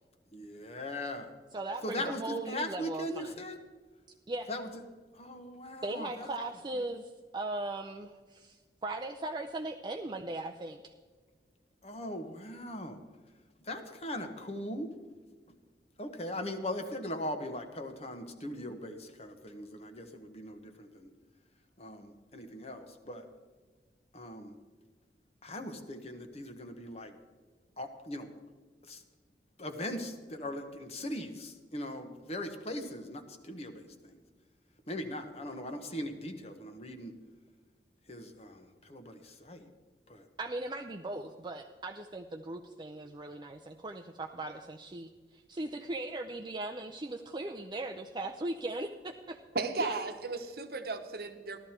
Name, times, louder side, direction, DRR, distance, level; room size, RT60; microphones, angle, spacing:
voice 1, 0.3-1.3 1.8-3.6 4.5-4.7 5.2-6.3 11.8-13.0 13.7-14.9 16.0-21.1 21.8-23.2 24.1-24.6 25.4-27.1 27.8-28.3 28.9-29.0 29.6-34.1 34.9-37.1 38.1-38.6 38.9-39.7 40.1-40.2 49.8-49.9, left 1 dB, 35° left, 7 dB, 1.1 m, -39 dB
voice 2, 1.5-3.4 4.3-4.5 5.8-10.9 40.4-49.4, right 2 dB, 25° right, 4 dB, 0.5 m, -38 dB
voice 3, 49.5-51.6, right 3 dB, 60° right, 7 dB, 1.1 m, -35 dB
14.0 x 12.5 x 4.4 m, 1.5 s
head